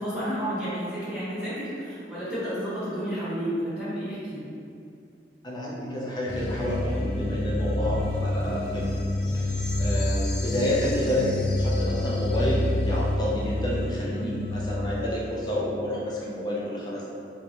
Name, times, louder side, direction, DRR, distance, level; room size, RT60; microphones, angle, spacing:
voice 1, 0.0-4.5 14.1-14.3, equal, 5° right, -12 dB, 1.0 m, -31 dB
voice 2, 5.4-8.9 9.3-9.4 9.8-17.1, left 1 dB, 25° left, -5 dB, 0.5 m, -29 dB
sound 1, 6.3-15.4, left 1 dB, 70° left, 0.5 m, -28 dB
3.2 x 2.0 x 2.9 m, 2.4 s
head